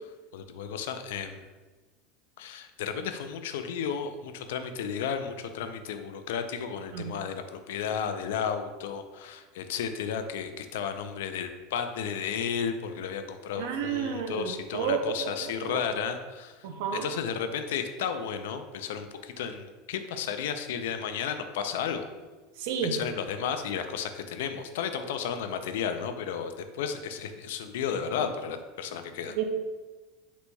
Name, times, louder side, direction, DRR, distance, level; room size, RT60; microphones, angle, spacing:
voice 1, 0.3-1.4 2.4-22.0 22.8-29.4, left 7 dB, 85° left, 8 dB, 0.4 m, -33 dB
voice 2, 13.6-15.8 16.6-17.1 22.6-22.9 28.2-28.3 29.3-29.4, right 6 dB, 70° right, 6 dB, 0.5 m, -31 dB
4.5 x 4.0 x 2.2 m, 1.3 s
supercardioid pair, 150°, 0 cm